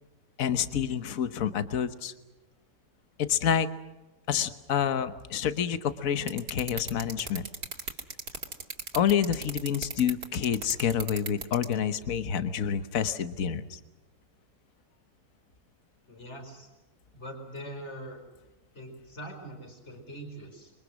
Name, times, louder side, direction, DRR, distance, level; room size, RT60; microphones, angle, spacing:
voice 1, 0.4-2.1 3.2-3.7 4.3-7.4 8.9-13.7, left 8 dB, 55° left, 11 dB, 1.5 m, -28 dB
sound 1, 6.3-11.7, right 4 dB, 65° right, 2.9 m, -35 dB
voice 2, 16.1-16.7 17.1-18.2 18.7-20.7, right 1 dB, 40° left, 4 dB, 5.0 m, -42 dB
28.0 x 23.5 x 6.4 m, 1.1 s
omnidirectional pair, 1.8 m